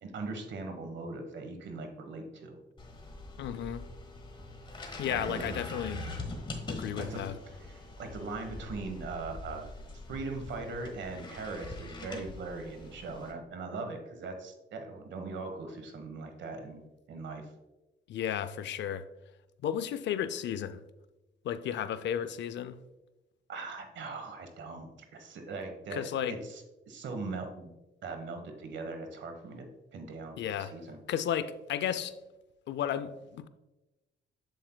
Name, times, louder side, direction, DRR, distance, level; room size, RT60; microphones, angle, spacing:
voice 1, 0.0-2.6 5.1-5.5 7.0-7.2 7.5-9.7 10.1-16.8 17.1-17.5 23.5-27.7 28.0-29.7 29.9-31.0, right 3 dB, 65° right, 6 dB, 1.2 m, -40 dB
sound 1, 2.8-13.3, left 2 dB, 25° left, 1.4 m, -43 dB
voice 2, 3.4-3.8 5.0-6.1 6.7-7.3 18.1-19.1 19.6-20.8 21.4-22.8 25.9-26.4 30.4-30.7 31.1-32.1 32.7-33.5, left 9 dB, 65° left, 13 dB, 0.5 m, -33 dB
7.6 x 7.3 x 2.2 m, 1.0 s
cardioid pair, 90°, 20 cm